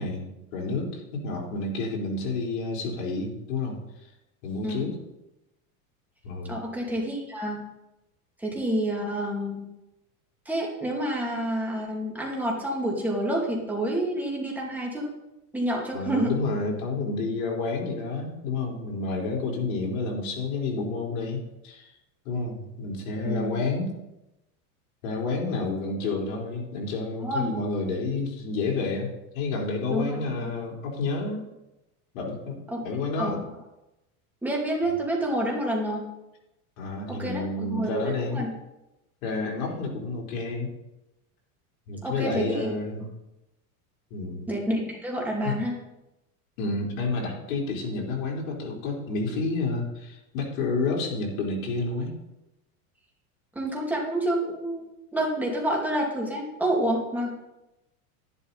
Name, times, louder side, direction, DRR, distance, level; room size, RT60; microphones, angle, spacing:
voice 1, 0.0-4.1 4.4-5.0 6.2-6.6 15.9-21.9 22.2-23.9 25.0-29.1 29.3-31.5 32.1-33.4 36.8-38.4 39.2-40.7 41.9-43.1 44.1-44.5 45.4-45.6 46.6-52.2, left 3 dB, 70° left, -2 dB, 4.2 m, -30 dB
voice 2, 6.5-7.6 8.4-9.6 10.5-15.1 15.5-16.4 23.3-23.6 27.2-27.5 29.9-30.5 32.7-32.8 33.2-33.4 34.4-36.1 37.1-37.4 37.7-38.5 42.0-42.7 44.5-45.7 53.5-57.4, right 1 dB, 5° right, -3 dB, 2.5 m, -28 dB
11.0 x 11.0 x 4.1 m, 0.94 s
supercardioid pair, 155°, 43 cm